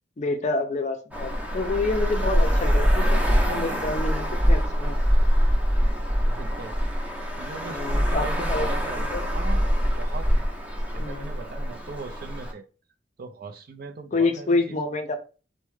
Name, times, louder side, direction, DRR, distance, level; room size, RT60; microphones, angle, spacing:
voice 1, 0.2-5.0 7.7-8.7 9.0-9.2 11.0-11.3 14.1-15.2, left 3 dB, 40° left, 0.4 m, -28 dB
Traffic noise roadway noise, 1.1-12.5, equal, 10° right, 0.6 m, -24 dB
voice 2, 6.2-9.7 10.0-10.5 10.9-12.6 13.2-14.8, right 4 dB, 50° right, 0.4 m, -40 dB
4.5 x 2.1 x 3.1 m
head